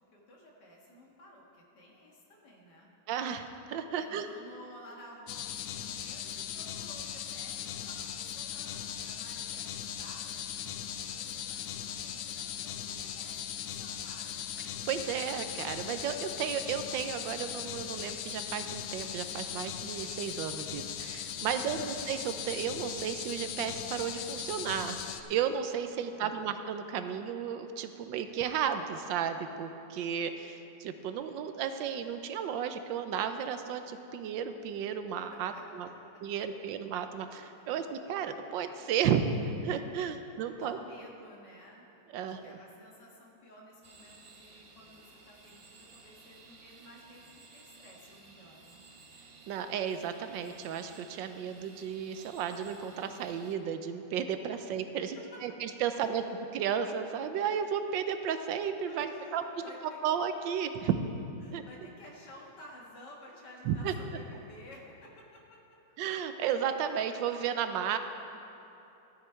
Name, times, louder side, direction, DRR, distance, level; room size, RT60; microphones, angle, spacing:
voice 1, 0.0-2.9 4.0-10.5 11.0-14.5 21.5-22.0 26.0-26.6 35.3-35.6 37.5-37.7 40.5-41.9 42.2-48.8 54.6-54.7 55.9-56.3 58.8-60.0 60.8-60.9 61.4-65.6, left 1 dB, 65° left, -2 dB, 2.2 m, -53 dB
voice 2, 3.1-4.3 14.9-25.0 25.3-35.9 36.2-39.3 39.6-40.8 42.1-42.4 49.5-56.2 56.5-59.4 60.0-61.0 61.5-61.6 63.7-63.9 66.0-68.0, right 8 dB, 85° right, 8 dB, 1.3 m, -33 dB
sound 1, 5.3-25.2, left 9 dB, 85° left, 1.3 m, -39 dB
sound 2, 43.8-53.6, right 3 dB, 40° right, 0.9 m, -56 dB
13.0 x 9.7 x 4.5 m, 2.9 s
omnidirectional pair, 2.0 m